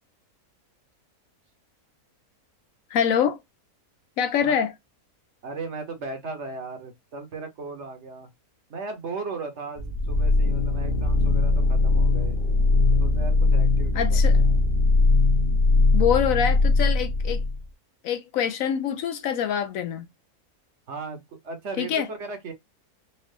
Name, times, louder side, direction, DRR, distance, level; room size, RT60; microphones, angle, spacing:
voice 1, 2.9-3.4 4.2-4.7 13.9-14.4 15.9-17.4 18.0-20.1 21.8-22.1, left 8 dB, 70° left, 0.9 m, -25 dB
voice 2, 5.4-8.3 8.7-12.4 12.8-14.6 20.9-22.5, right 4 dB, 55° right, 1.1 m, -37 dB
sound 1, 9.8-17.6, left 3 dB, 45° left, 0.9 m, -20 dB
4.3 x 2.4 x 3.2 m
omnidirectional pair, 1.6 m